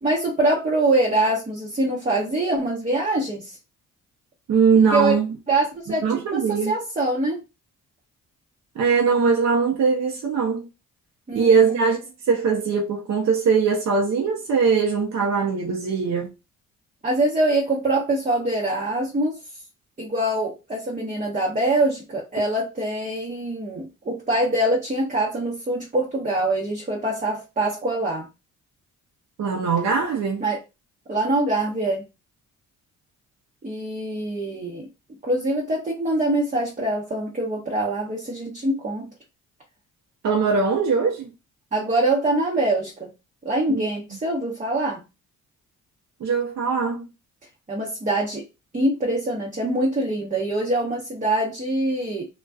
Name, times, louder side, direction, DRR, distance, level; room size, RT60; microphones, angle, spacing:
voice 1, 0.0-3.6 4.9-5.1 5.5-7.4 11.3-11.9 17.0-19.4 20.0-28.3 30.4-30.6 31.1-32.0 33.6-34.9 35.2-39.1 41.7-43.1 43.4-45.0 47.7-48.4 48.7-52.3, right 2 dB, 25° right, 0.9 m, -24 dB
voice 2, 4.5-5.3 6.0-6.7 8.8-10.7 11.3-16.3 29.4-30.4 40.2-41.3 43.7-43.8 46.2-47.1, right 5 dB, 55° right, 0.7 m, -21 dB
2.4 x 2.2 x 2.3 m
supercardioid pair, 60°, 33 cm